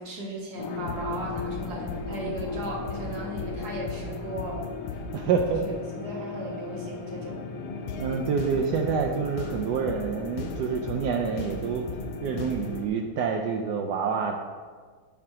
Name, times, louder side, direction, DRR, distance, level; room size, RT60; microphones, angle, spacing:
voice 1, 0.0-4.7 5.6-7.4, right 2 dB, 50° right, -3 dB, 1.8 m, -36 dB
sound 1, 0.6-12.9, left 4 dB, 80° left, 1.6 m, -35 dB
voice 2, 5.1-5.8 8.0-11.9 12.2-14.4, right 6 dB, 85° right, 2 dB, 0.9 m, -27 dB
7.5 x 4.5 x 4.9 m, 1.5 s
omnidirectional pair, 2.4 m